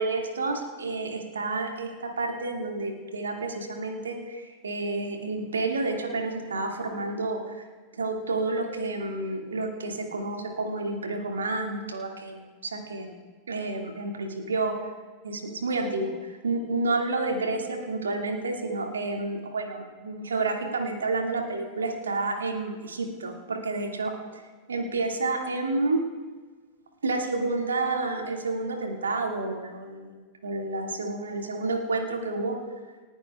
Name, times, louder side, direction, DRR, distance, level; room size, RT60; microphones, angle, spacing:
voice 1, 0.0-7.6 8.0-13.1 13.5-14.8 15.2-24.4 24.7-26.0 27.0-32.6, right 3 dB, 70° right, 2 dB, 2.0 m, -30 dB
29.5 x 10.0 x 2.3 m, 1.4 s
figure-of-eight pair, 90°, 0 cm